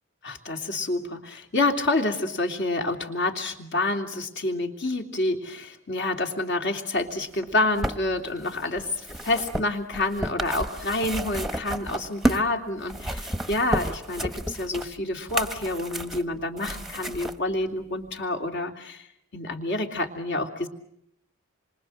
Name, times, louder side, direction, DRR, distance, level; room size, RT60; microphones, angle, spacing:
voice 1, 0.2-19.1 19.3-20.7, left 2 dB, 55° left, 4 dB, 3.1 m, -28 dB
sound 1, 7.3-12.5 12.8-17.4 18.2-18.3, right 1 dB, ahead, 1.1 m, -31 dB
28.0 x 25.5 x 7.9 m, 0.75 s
head